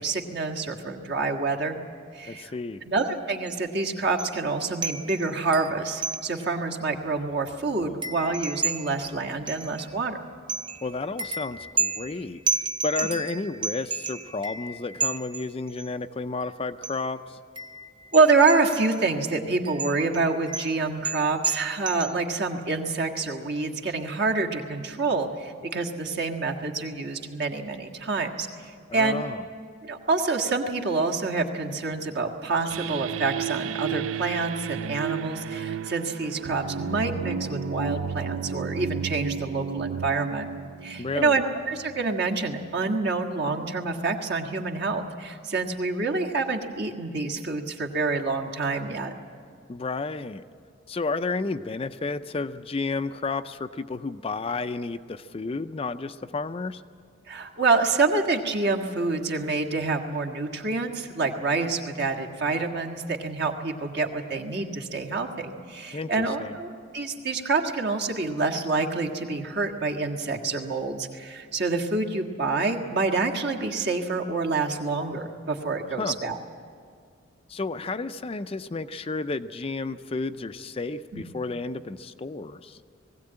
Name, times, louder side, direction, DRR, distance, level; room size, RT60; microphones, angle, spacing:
voice 1, 0.0-1.8 2.1-2.5 2.8-10.2 13.0-13.1 18.1-29.2 29.8-40.4 40.8-49.1 57.3-76.4 81.1-81.2, right 3 dB, 55° right, 2 dB, 1.6 m, -27 dB
voice 2, 2.3-2.8 10.8-12.4 12.8-17.4 28.9-29.4 41.0-41.4 49.7-50.4 50.9-56.8 65.9-66.6 76.0-76.2 77.5-82.8, left 3 dB, 30° left, 10 dB, 0.4 m, -32 dB
sound 1, 3.0-3.2 3.5-3.6 4.2-4.5 4.8-6.6 7.0-7.1 7.3-10.1 10.5-15.9 16.8-17.1 17.6-19.1 19.7-22.1, right 4 dB, 25° right, 0.7 m, -33 dB
sound 2, 32.7-42.0, right 7 dB, 85° right, 0.4 m, -33 dB
20.0 x 16.0 x 8.8 m, 2.1 s
head